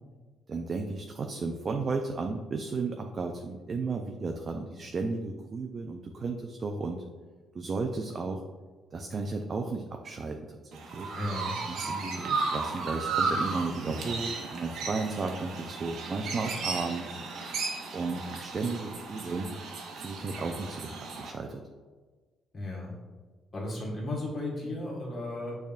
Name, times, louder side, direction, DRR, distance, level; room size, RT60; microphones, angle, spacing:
voice 1, 0.5-7.0 7.5-8.4 8.9-11.1 11.7-17.2 17.9-19.5 19.9-21.6, right 3 dB, 40° right, 4 dB, 0.4 m, -34 dB
Chirp tweet, 10.7-21.3, right 4 dB, 80° right, 0.7 m, -34 dB
voice 2, 11.1-11.6 22.5-22.9 23.5-25.6, left 1 dB, 35° left, -4 dB, 1.4 m, -34 dB
6.4 x 3.5 x 2.4 m, 1.4 s
cardioid pair, 90°, 0 cm